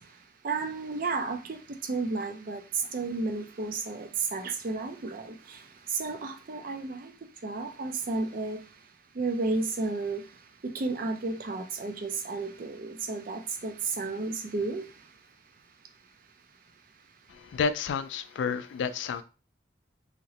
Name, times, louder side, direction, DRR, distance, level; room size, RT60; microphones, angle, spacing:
voice 1, 0.4-5.6 5.9-7.1 7.4-8.6 9.2-10.2 10.6-14.8, right 3 dB, 50° right, 0.4 m, -32 dB
voice 2, 17.3-19.2, left 5 dB, 85° left, 0.3 m, -30 dB
2.9 x 2.9 x 2.8 m
head